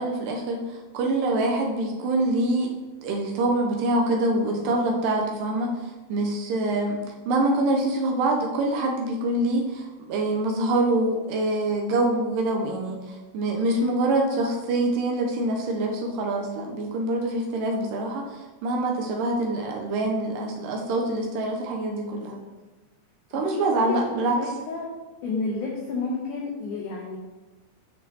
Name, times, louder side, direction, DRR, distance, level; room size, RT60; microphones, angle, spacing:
voice 1, 0.0-2.7 3.0-22.3 23.3-24.4, right 2 dB, 85° right, 1 dB, 1.9 m, -25 dB
voice 2, 4.4-4.8 22.1-22.4 23.3-24.9 25.2-27.2, left 4 dB, 90° left, -2 dB, 1.7 m, -32 dB
7.1 x 6.5 x 2.8 m, 1.2 s
omnidirectional pair, 4.7 m